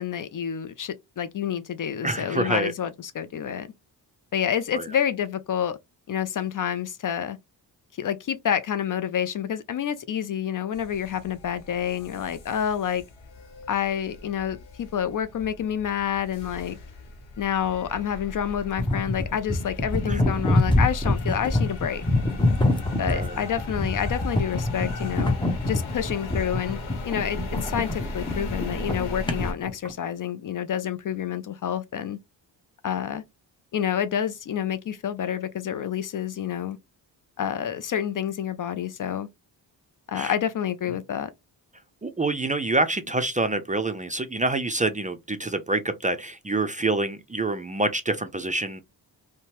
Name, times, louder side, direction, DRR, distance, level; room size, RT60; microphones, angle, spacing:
voice 1, 0.0-3.7 4.3-5.8 6.1-7.4 8.0-13.0 13.7-16.8 17.4-22.0 23.0-25.4 25.7-26.8 27.1-32.2 32.8-33.2 33.7-36.8 37.4-39.3 40.1-41.3, left 9 dB, 45° left, 0.4 m, -28 dB
voice 2, 2.0-2.7 4.7-4.9 20.1-20.2 23.1-23.4 40.2-40.3 42.0-48.8, right 2 dB, 15° right, 0.4 m, -26 dB
sound 1, 10.7-29.5, left 2 dB, 90° left, 1.0 m, -38 dB
sound 2, 18.8-29.9, left 2 dB, 10° left, 0.7 m, -25 dB
2.7 x 2.1 x 2.9 m
supercardioid pair, 50°, 47 cm